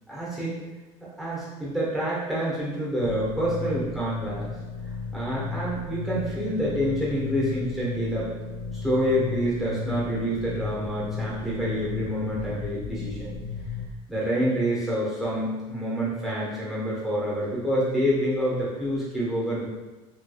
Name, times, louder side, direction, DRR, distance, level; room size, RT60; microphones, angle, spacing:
voice 1, 0.1-0.5 1.2-4.5 5.1-8.3 8.8-13.3 14.1-19.6, equal, ahead, -8 dB, 1.2 m, -27 dB
sound 1, 3.0-13.9, left 5 dB, 65° left, 0.4 m, -34 dB
3.3 x 3.1 x 2.3 m, 1.1 s
cardioid pair, 140°, 14 cm